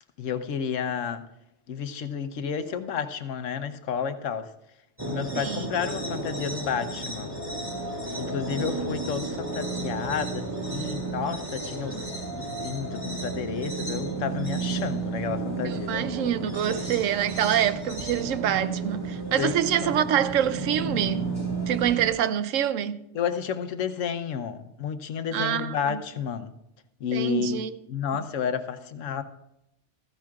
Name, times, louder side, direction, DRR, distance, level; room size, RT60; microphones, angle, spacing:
voice 1, 0.2-1.2 1.7-4.5 5.0-7.3 8.2-12.1 12.4-16.1 19.4-19.9 23.1-26.5 27.0-27.6 27.9-29.2, left 7 dB, 85° left, 1.1 m, -31 dB
sound 1, 5.0-22.1, right 3 dB, 20° right, 2.1 m, -32 dB
voice 2, 11.9-12.2 15.7-21.3 21.7-23.0 25.3-26.0 27.1-27.8, right 10 dB, 90° right, 1.0 m, -26 dB
15.0 x 14.5 x 2.4 m
omnidirectional pair, 1.3 m